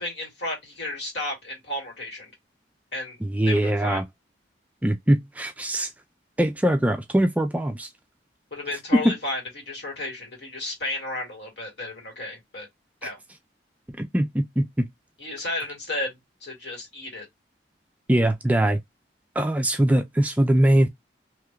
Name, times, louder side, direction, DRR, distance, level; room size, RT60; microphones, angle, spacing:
voice 1, 0.0-2.3 2.9-3.2 3.5-4.0 8.5-12.7 13.0-13.2 15.2-17.3, left 2 dB, 70° left, 1.9 m, -33 dB
voice 2, 3.2-4.0 4.8-5.9 6.4-7.9 8.9-9.1 14.0-14.9 18.1-18.8 19.4-20.9, right 1 dB, 10° right, 0.3 m, -22 dB
3.4 x 2.9 x 2.2 m
head